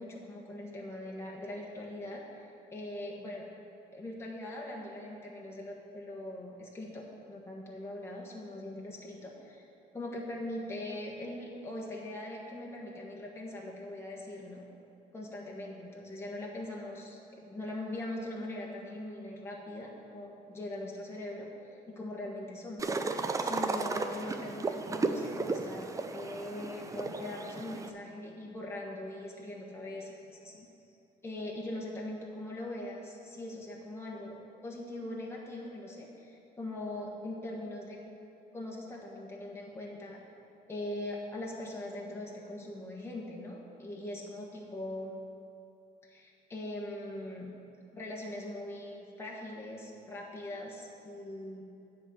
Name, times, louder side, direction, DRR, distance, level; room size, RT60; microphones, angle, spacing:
voice 1, 0.0-3.4 3.9-9.7 9.9-14.6 15.1-30.7 31.2-34.4 34.6-38.0 38.5-40.2 40.7-45.2 46.0-47.5 47.9-51.6, left 1 dB, 15° left, -3 dB, 1.4 m, -41 dB
sound 1, 22.8-27.9, right 3 dB, 20° right, 0.5 m, -34 dB
9.9 x 4.4 x 7.7 m, 2.7 s
cardioid pair, 110°, 17 cm